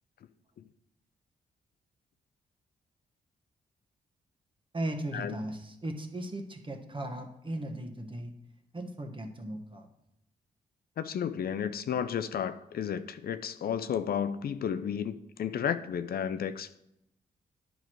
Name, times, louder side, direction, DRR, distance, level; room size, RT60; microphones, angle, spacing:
voice 1, 4.7-8.3 8.7-9.9, right 1 dB, 30° right, 4 dB, 1.2 m, -37 dB
voice 2, 11.0-16.8, left 8 dB, 60° left, 12 dB, 0.5 m, -32 dB
9.3 x 4.6 x 4.6 m, 0.81 s
supercardioid pair, 50°, 17 cm